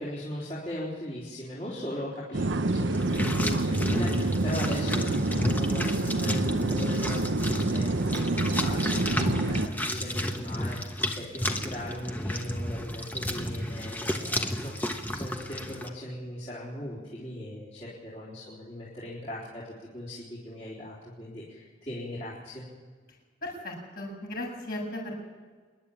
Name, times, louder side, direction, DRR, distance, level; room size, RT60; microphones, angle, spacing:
voice 1, 0.0-22.6, left 1 dB, 35° left, -8 dB, 4.2 m, -39 dB
sound 1, 2.3-9.7, right 2 dB, 90° right, 0.9 m, -27 dB
sound 2, 2.9-15.9, left 1 dB, 10° left, 1.1 m, -32 dB
voice 2, 23.4-25.1, left 1 dB, 50° left, -2 dB, 7.4 m, -36 dB
26.5 x 11.5 x 8.7 m, 1.5 s
head